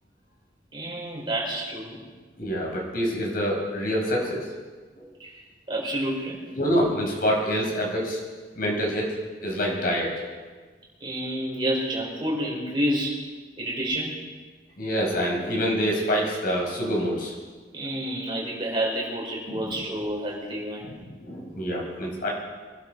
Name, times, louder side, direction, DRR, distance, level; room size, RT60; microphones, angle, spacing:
voice 1, 0.7-2.0 5.2-5.4 5.7-6.4 11.0-13.2 13.6-14.2 17.7-20.9, right 1 dB, 30° right, -4 dB, 4.9 m, -29 dB
voice 2, 2.4-4.5 4.9-5.1 6.5-8.2 8.6-9.1 9.4-10.1 14.8-17.3 19.5-19.8 20.8-22.3, equal, 55° left, -1 dB, 4.9 m, -26 dB
24.5 x 12.0 x 4.6 m, 1.4 s
head